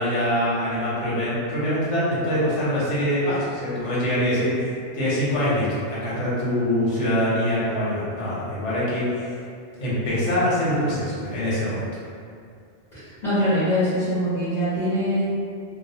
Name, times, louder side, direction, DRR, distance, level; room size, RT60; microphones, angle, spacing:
voice 1, 0.0-4.7 4.9-9.3 9.8-11.9, equal, 80° left, -9 dB, 1.2 m, -24 dB
voice 2, 12.9-15.3, equal, 45° left, -16 dB, 1.0 m, -23 dB
2.6 x 2.0 x 2.7 m, 2.3 s
omnidirectional pair, 1.2 m